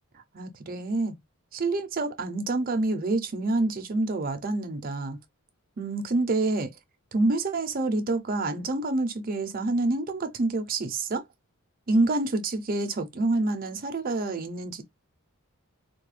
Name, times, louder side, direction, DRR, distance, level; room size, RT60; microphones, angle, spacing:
voice 1, 0.3-1.1 1.5-5.2 5.8-6.7 7.1-11.2 11.9-14.8, right 2 dB, 40° right, 0.6 m, -27 dB
3.6 x 2.2 x 3.1 m
head